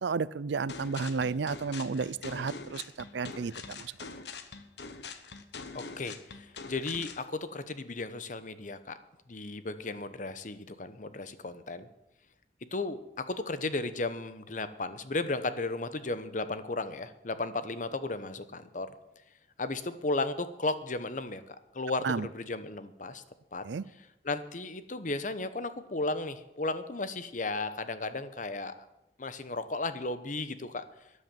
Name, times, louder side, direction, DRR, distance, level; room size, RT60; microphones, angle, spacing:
voice 1, 0.0-2.8 3.1-3.9 22.0-22.3 23.6-23.8, right 5 dB, 80° right, 20 dB, 0.5 m, -32 dB
sound 1, 0.7-7.2, left 4 dB, 70° left, 1.1 m, -44 dB
voice 2, 5.7-9.0 9.3-11.9 12.7-18.9 19.6-23.2 23.5-23.6 24.0-28.7 29.2-30.9, left 2 dB, 45° left, 12 dB, 0.9 m, -35 dB
13.0 x 9.9 x 7.5 m, 0.95 s
head